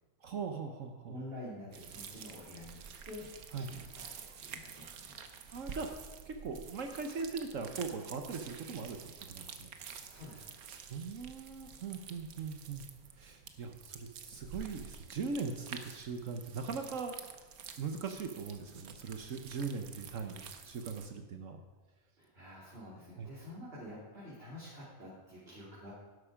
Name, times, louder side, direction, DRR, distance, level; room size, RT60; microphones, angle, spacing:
voice 1, 0.2-1.2 3.5-3.7 5.5-5.9 6.2-9.0 9.3-9.7 10.9-12.8 13.2-17.2 17.8-21.6 23.2-23.3, right 5 dB, 65° right, 5 dB, 1.3 m, -40 dB
voice 2, 1.1-4.1 4.4-5.2 9.9-10.5 22.2-25.9, left 1 dB, 40° right, -8 dB, 3.5 m, -48 dB
sound 1, 1.7-21.1, right 6 dB, 85° right, 1.5 m, -49 dB
11.5 x 11.5 x 5.0 m, 1.3 s
omnidirectional pair, 1.5 m